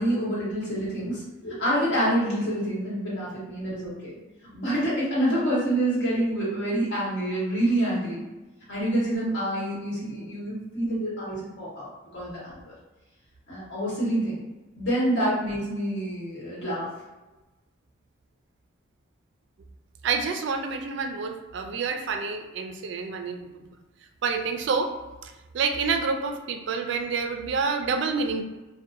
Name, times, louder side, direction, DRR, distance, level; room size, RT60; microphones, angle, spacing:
voice 1, 0.0-4.2 4.5-8.2 8.7-12.7 13.5-14.4 14.7-16.9, right 1 dB, 65° left, -7 dB, 1.1 m, -27 dB
voice 2, 20.0-23.8 24.2-25.0 25.2-28.4, right 5 dB, 65° right, 6 dB, 0.3 m, -28 dB
2.6 x 2.1 x 2.4 m, 1.1 s
head